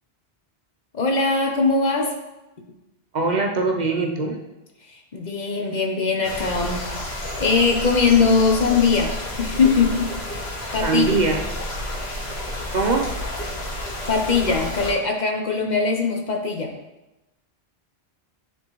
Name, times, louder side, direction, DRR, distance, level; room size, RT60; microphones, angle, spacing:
voice 1, 0.9-2.1 5.1-6.9 7.4-10.2 10.7-11.1 14.1-16.7, left 4 dB, 50° left, 2 dB, 0.7 m, -21 dB
voice 2, 3.1-4.4 10.8-11.4 12.7-13.1, right 3 dB, 50° right, 1 dB, 0.6 m, -21 dB
sound 1, 6.2-14.9, left 1 dB, 75° left, 1.6 m, -30 dB
10.0 x 3.6 x 3.0 m, 1.0 s
omnidirectional pair, 1.1 m